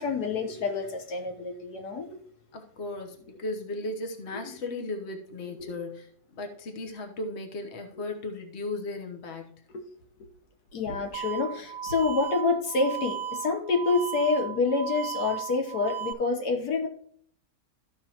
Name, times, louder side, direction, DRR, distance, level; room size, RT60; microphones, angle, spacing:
voice 1, 0.0-2.2 4.4-4.6 5.5-5.8 8.0-8.1 9.7-9.8 10.7-16.9, left 4 dB, 85° left, 4 dB, 1.7 m, -28 dB
voice 2, 2.5-6.1 6.3-9.5, left 2 dB, 50° left, 5 dB, 1.3 m, -36 dB
sound 1, 11.1-16.1, right 8 dB, 55° right, 1.0 m, -35 dB
14.0 x 5.6 x 2.9 m, 0.63 s
omnidirectional pair, 1.6 m